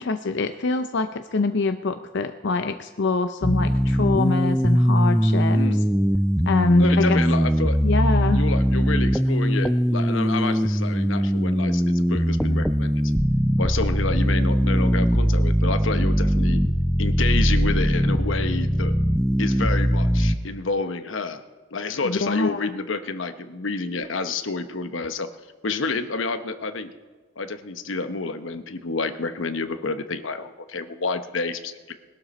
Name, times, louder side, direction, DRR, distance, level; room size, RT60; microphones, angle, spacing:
voice 1, 0.0-5.6 6.5-7.2 7.8-8.4 22.0-22.7, left 3 dB, 65° left, 8 dB, 0.6 m, -24 dB
sound 1, 3.4-20.4, equal, ahead, 0.4 m, -21 dB
voice 2, 5.5-5.8 6.8-7.8 8.3-12.9 13.6-16.6 17.0-18.9 19.4-21.4 21.7-25.3 25.6-26.9 27.4-31.9, left 3 dB, 85° left, 9 dB, 1.0 m, -29 dB
21.0 x 12.0 x 4.3 m, 1.4 s
head